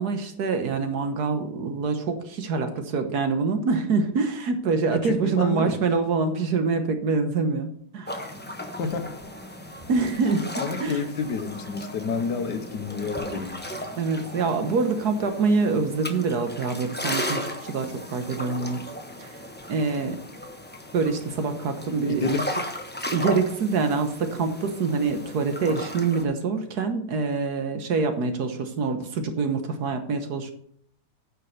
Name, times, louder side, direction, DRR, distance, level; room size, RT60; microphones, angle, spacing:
voice 1, 0.0-8.1 9.9-11.0 14.0-18.8 19.2-19.4 19.7-20.2 20.9-22.3 23.1-30.5, right 4 dB, 65° right, 7 dB, 1.6 m, -25 dB
voice 2, 4.9-5.8 8.8-9.1 10.6-13.7 22.1-22.5, left 4 dB, 70° left, 8 dB, 1.6 m, -29 dB
sound 1, 8.1-26.2, equal, 10° left, 0.7 m, -36 dB
9.5 x 5.6 x 6.5 m, 0.64 s
omnidirectional pair, 1.9 m